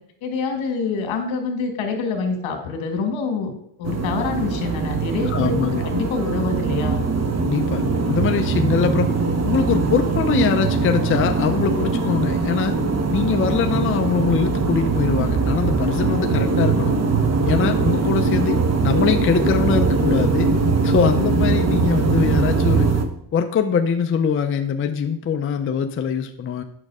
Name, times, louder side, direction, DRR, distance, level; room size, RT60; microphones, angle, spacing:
voice 1, 0.2-3.5 3.8-5.6 5.8-7.0, left 4 dB, 70° left, 4 dB, 2.2 m, -26 dB
sound 1, 3.8-23.1, right 4 dB, 30° right, 1.0 m, -21 dB
voice 2, 5.3-5.8 7.4-9.1 9.4-12.7 13.1-16.9 17.5-20.5 20.8-22.9 23.3-26.6, left 7 dB, 25° left, 6 dB, 0.5 m, -22 dB
8.9 x 6.4 x 4.8 m, 0.73 s
cardioid pair, 125°, 49 cm